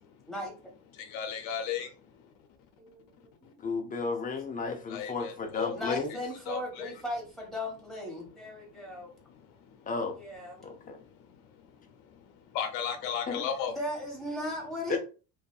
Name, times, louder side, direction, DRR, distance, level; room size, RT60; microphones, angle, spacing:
voice 1, 1.0-1.9 4.9-5.7 6.5-6.9 12.5-13.7, left 8 dB, 85° left, 0.7 m, -34 dB
voice 2, 2.8-3.6 5.7-9.1 10.2-10.6 13.6-15.0, left 1 dB, ahead, 1.4 m, -37 dB
voice 3, 3.6-6.2 9.9-10.2 10.6-11.0 13.3-13.5 14.9-15.0, left 4 dB, 20° left, 0.5 m, -33 dB
2.6 x 2.4 x 2.3 m
supercardioid pair, 105°, 49 cm